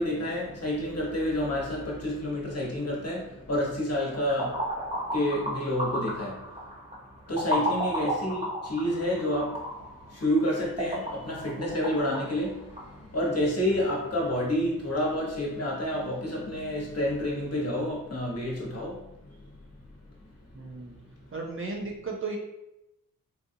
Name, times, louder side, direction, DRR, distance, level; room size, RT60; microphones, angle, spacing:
voice 1, 0.0-6.4 7.3-19.6, left 1 dB, 45° left, -3 dB, 1.1 m, -29 dB
sound 1, 4.0-12.9, equal, 20° right, 1.0 m, -34 dB
voice 2, 20.5-21.0 21.3-22.4, right 3 dB, 35° right, -2 dB, 0.7 m, -35 dB
4.2 x 2.3 x 2.7 m, 0.88 s
wide cardioid pair, 90°, 34 cm